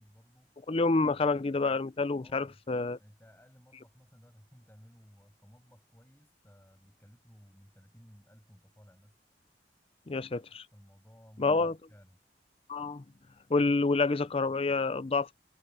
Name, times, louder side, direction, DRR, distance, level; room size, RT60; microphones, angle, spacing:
voice 1, 0.0-0.5 2.2-2.6 3.0-9.2 10.7-12.2, equal, 15° left, 7.4 m, -58 dB
voice 2, 0.7-3.0 10.1-10.6 11.4-11.7 12.7-13.0 13.5-15.3, left 3 dB, 35° left, 0.6 m, -28 dB
head